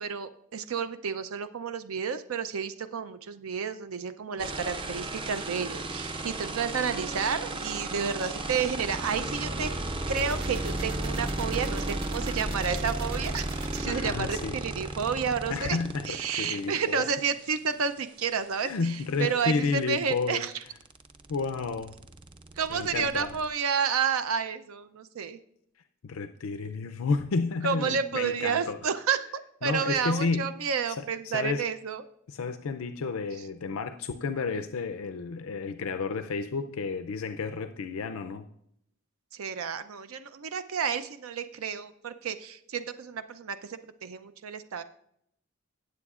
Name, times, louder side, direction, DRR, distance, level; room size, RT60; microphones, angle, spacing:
voice 1, 0.0-9.7 10.1-13.5 13.7-15.8 16.1-20.5 22.6-25.4 27.6-29.2 29.6-32.0 39.3-44.8, right 6 dB, 90° right, 10 dB, 0.5 m, -30 dB
sound 1, 4.4-16.6 18.8-18.9 19.1-23.5, right 2 dB, 25° right, 0.5 m, -34 dB
sound 2, 8.4-13.8, right 1 dB, 45° right, 1.9 m, -41 dB
voice 2, 13.8-14.6 15.5-17.1 18.6-20.4 21.3-22.0 22.7-23.3 26.0-28.8 29.6-30.5 30.9-31.6 32.3-38.4, left 4 dB, 90° left, 8 dB, 0.5 m, -31 dB
18.0 x 7.8 x 2.4 m, 0.73 s
head